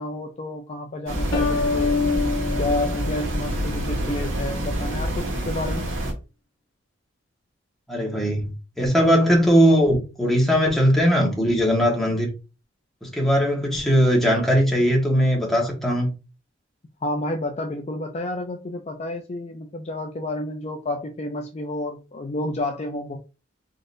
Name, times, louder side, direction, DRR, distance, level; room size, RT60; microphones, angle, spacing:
voice 1, 0.0-2.0 2.6-5.9 17.0-23.2, left 1 dB, 35° left, 0.4 m, -30 dB
sound 1, 1.1-6.1, right 1 dB, 85° right, 1.5 m, -27 dB
sound 2, 1.3-4.0, left 4 dB, 75° left, 0.9 m, -26 dB
voice 2, 7.9-8.5 8.8-12.3 13.0-16.1, equal, ahead, 1.4 m, -19 dB
3.8 x 3.7 x 2.6 m
head